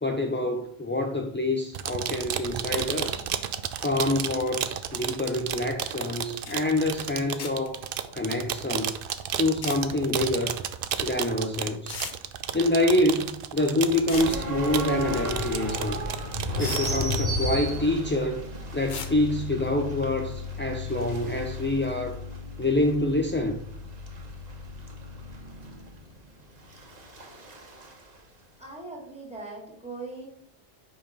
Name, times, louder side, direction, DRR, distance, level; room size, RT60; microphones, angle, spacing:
voice 1, 0.0-3.3 3.8-7.8 8.1-9.0 9.4-10.6 11.0-12.0 12.5-16.0 16.6-18.4 18.7-22.2 22.6-23.6, left 1 dB, 20° left, 0.4 m, -26 dB
sound 1, 1.7-17.2, right 9 dB, 65° right, 0.7 m, -33 dB
sound 2, 6.2-6.3 6.5-6.6 7.4-7.8 9.5-9.8 11.2-11.3 11.9-12.2 13.9-14.4 16.0-16.1 16.6-16.9 18.9-19.1, left 5 dB, 50° left, 0.8 m, -38 dB
sound 3, 14.1-27.9, left 1 dB, 45° right, 1.2 m, -34 dB
voice 2, 28.6-30.3, right 3 dB, 5° right, 2.0 m, -40 dB
5.3 x 5.2 x 5.0 m
omnidirectional pair, 1.0 m